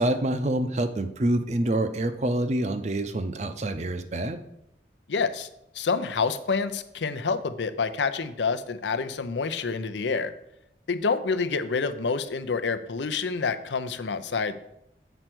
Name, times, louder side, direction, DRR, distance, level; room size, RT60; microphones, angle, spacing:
voice 1, 0.0-4.4, right 1 dB, 40° right, 9 dB, 0.6 m, -26 dB
voice 2, 5.1-5.5 5.7-10.3 10.9-14.6, left 4 dB, 85° left, 11 dB, 0.6 m, -28 dB
8.0 x 4.5 x 6.0 m, 0.81 s
head